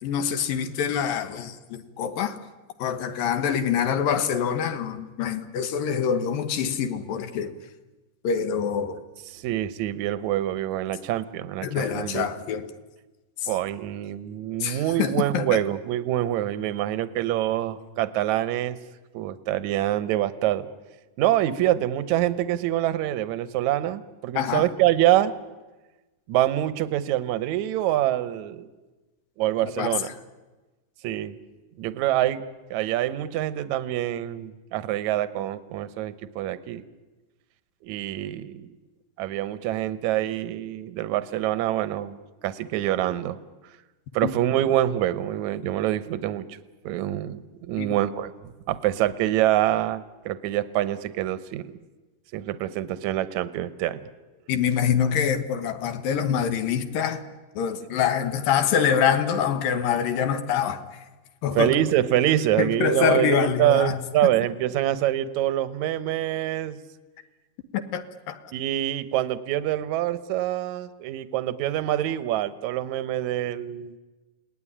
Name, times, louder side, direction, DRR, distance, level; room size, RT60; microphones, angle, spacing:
voice 1, 0.0-2.4 2.8-7.6 8.2-9.0 11.6-12.7 13.4-13.5 14.6-15.6 24.4-24.7 29.6-30.1 44.2-44.3 47.8-47.9 54.5-57.2 57.6-61.1 61.4-61.8 62.6-64.0 67.7-68.4, left 8 dB, 70° left, 3.0 m, -25 dB
voice 2, 9.3-12.3 13.5-18.8 19.1-20.7 21.2-25.3 26.3-28.7 29.4-30.1 31.0-31.4 31.8-32.4 32.7-36.8 37.8-38.7 39.2-43.4 44.1-46.6 46.8-51.7 52.3-54.0 61.6-66.8 68.5-74.0, right 13 dB, 65° right, 2.0 m, -25 dB
29.0 x 19.0 x 10.0 m
omnidirectional pair, 4.2 m